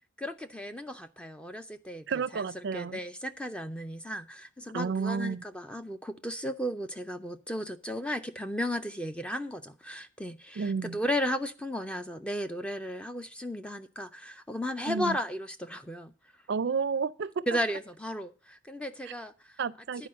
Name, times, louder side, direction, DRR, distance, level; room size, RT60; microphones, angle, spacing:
voice 1, 0.2-16.1 17.5-19.6 20.0-20.1, equal, 5° left, 0.4 m, -35 dB
voice 2, 2.1-3.0 4.7-5.4 10.6-11.0 14.9-15.2 16.5-17.4 19.6-20.1, right 5 dB, 55° right, 0.4 m, -31 dB
10.0 x 4.8 x 7.5 m
head